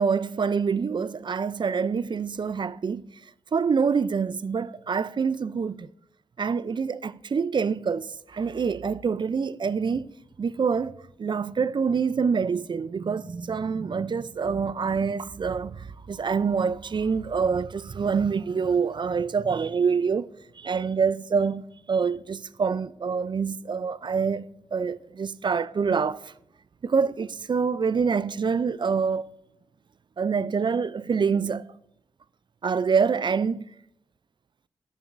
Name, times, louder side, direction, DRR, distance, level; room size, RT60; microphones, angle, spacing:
voice 1, 0.0-3.1 3.5-5.9 6.4-10.1 10.4-20.3 20.6-26.3 26.8-29.3 30.2-31.7 32.6-33.7, right 5 dB, 40° right, 0.3 m, -26 dB
9.8 x 7.3 x 2.5 m
supercardioid pair, 40°, 13 cm